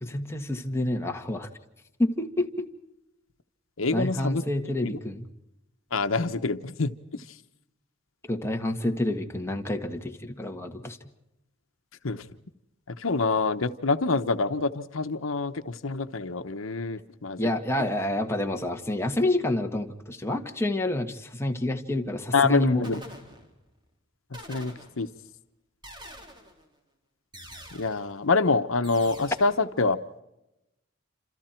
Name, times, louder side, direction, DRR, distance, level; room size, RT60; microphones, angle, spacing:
voice 1, 0.0-1.5 2.0-2.6 3.9-5.2 8.2-11.0 17.4-22.9, left 1 dB, 15° left, 1.7 m, -28 dB
voice 2, 3.8-4.4 4.8-4.9 5.9-7.2 12.0-12.2 12.9-17.5 22.3-23.0 24.5-25.1 27.7-30.0, left 3 dB, 80° left, 1.0 m, -26 dB
sound 1, 22.0-22.3 22.8-23.8 24.3-25.3 25.8-26.7 27.3-28.2 28.8-29.6, equal, 25° right, 4.1 m, -46 dB
28.5 x 27.5 x 4.5 m
head